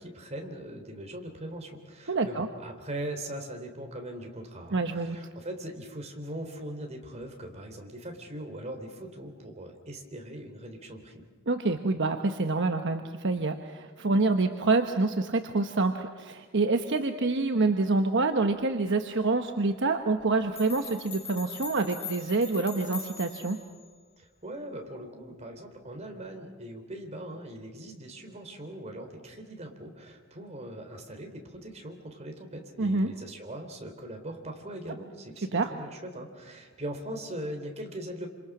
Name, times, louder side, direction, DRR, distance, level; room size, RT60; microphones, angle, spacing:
voice 1, 0.0-11.3 24.2-38.3, right 1 dB, 30° right, 4 dB, 3.7 m, -40 dB
voice 2, 2.1-2.5 4.7-5.2 11.5-23.6 32.8-33.1 35.4-35.7, right 3 dB, 60° right, 6 dB, 1.1 m, -27 dB
sound 1, 20.2-20.3 20.6-23.7, left 5 dB, 30° left, 6.2 m, -41 dB
27.5 x 27.0 x 6.2 m, 1.5 s
head